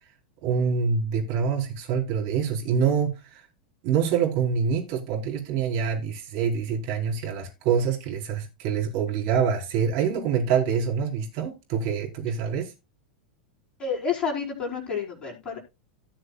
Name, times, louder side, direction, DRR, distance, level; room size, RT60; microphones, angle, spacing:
voice 1, 0.4-3.4 3.8-12.7, right 6 dB, 50° right, 4.6 m, -26 dB
voice 2, 13.8-15.6, left 6 dB, 20° left, 4.7 m, -29 dB
17.0 x 6.4 x 2.4 m
figure-of-eight pair, 90°, 5 cm